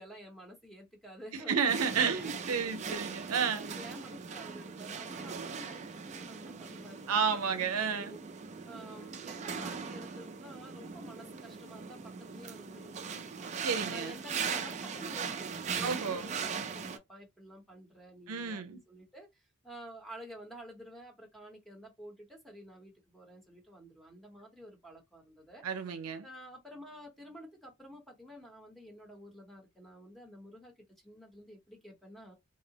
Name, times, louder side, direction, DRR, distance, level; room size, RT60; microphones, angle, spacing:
voice 1, 0.0-3.1 3.5-8.2 8.6-25.6 26.2-32.3, equal, ahead, 0.8 m, -51 dB
voice 2, 1.3-3.7 7.1-8.2 13.6-14.2 15.8-16.3 18.3-18.8 25.6-26.3, right 6 dB, 90° right, 0.6 m, -31 dB
sound 1, 1.6-17.0, right 6 dB, 30° right, 0.3 m, -40 dB
2.7 x 2.0 x 2.7 m
head